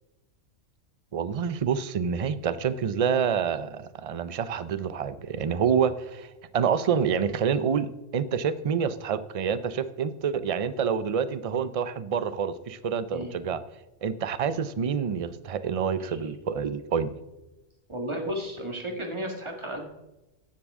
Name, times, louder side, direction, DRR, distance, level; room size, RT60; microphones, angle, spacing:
voice 1, 1.1-13.6 14.0-17.1, right 7 dB, 45° right, 14 dB, 0.4 m, -27 dB
voice 2, 17.9-19.9, equal, 20° right, 3 dB, 1.9 m, -33 dB
14.5 x 10.5 x 3.7 m, 0.98 s
omnidirectional pair, 1.3 m